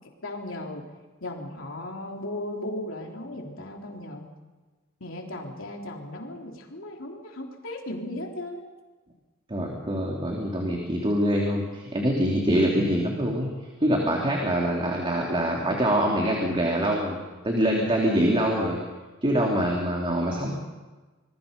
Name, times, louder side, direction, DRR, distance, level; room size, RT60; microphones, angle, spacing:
voice 1, 0.2-0.8 1.2-4.3 5.0-8.7, left 1 dB, 70° left, 0 dB, 3.8 m, -36 dB
voice 2, 9.5-13.5 13.8-17.2 17.4-18.8 19.2-20.5, equal, 25° right, -1 dB, 3.1 m, -24 dB
26.5 x 22.0 x 5.4 m, 1.2 s
head